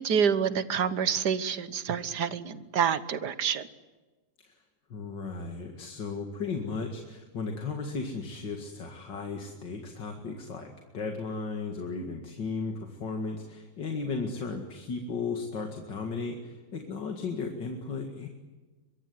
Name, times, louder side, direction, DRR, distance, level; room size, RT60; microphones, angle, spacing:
voice 1, 0.0-3.6, right 7 dB, 65° right, 14 dB, 1.7 m, -27 dB
voice 2, 4.9-18.3, left 4 dB, 75° left, 4 dB, 2.8 m, -35 dB
24.0 x 22.5 x 9.7 m, 1.3 s
omnidirectional pair, 2.0 m